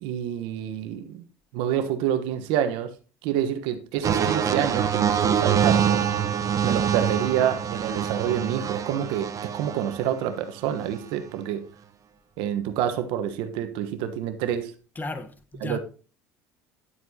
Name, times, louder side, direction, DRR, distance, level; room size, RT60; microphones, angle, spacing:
voice 1, 0.0-1.3 1.5-2.9 3.2-6.0 6.6-11.6 12.4-14.7 15.6-15.8, right 10 dB, 70° right, 1.2 m, -27 dB
sound 1, 4.0-10.1 10.8-11.1, right 8 dB, 40° right, 1.0 m, -25 dB
voice 2, 15.0-15.8, left 2 dB, 20° left, 1.2 m, -34 dB
11.5 x 7.7 x 2.9 m
hypercardioid pair, 80°, 9 cm